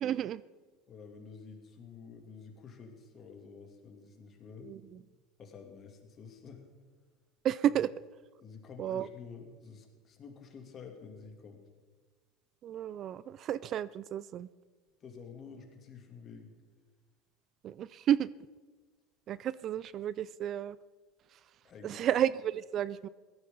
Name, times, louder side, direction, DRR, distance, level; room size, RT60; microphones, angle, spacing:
voice 1, 0.0-0.4 4.6-4.8 7.4-7.9 8.8-9.1 12.6-14.5 17.6-18.3 19.3-20.8 21.3-21.4 21.8-23.1, right 10 dB, 45° right, 19 dB, 0.3 m, -31 dB
voice 2, 0.9-4.7 5.4-6.6 7.7-7.8 8.4-11.7 15.0-16.5 21.6-22.1, left 5 dB, 40° left, 3 dB, 2.8 m, -50 dB
17.0 x 14.0 x 3.9 m, 1.4 s
hypercardioid pair, 85°, 0 cm